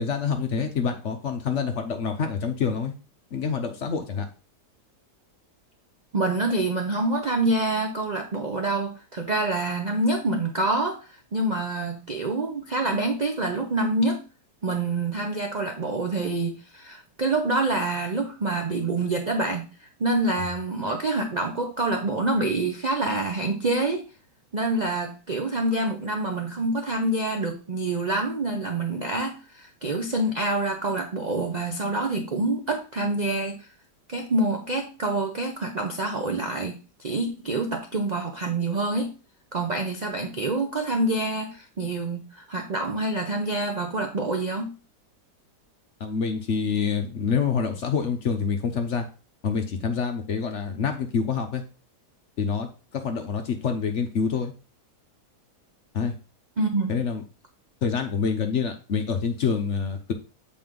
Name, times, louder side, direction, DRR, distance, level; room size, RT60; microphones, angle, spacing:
voice 1, 0.0-2.9 3.3-4.3 46.0-49.1 49.4-51.6 52.4-54.5 55.9-56.1 56.9-57.2 57.8-60.1, left 6 dB, 55° left, 6 dB, 0.9 m, -26 dB
voice 2, 6.1-14.2 14.6-19.7 20.0-24.0 24.5-33.7 34.1-39.1 39.5-44.7 56.6-56.9, right 2 dB, 65° right, 4 dB, 0.4 m, -26 dB
7.5 x 4.3 x 3.7 m, 0.34 s
omnidirectional pair, 1.8 m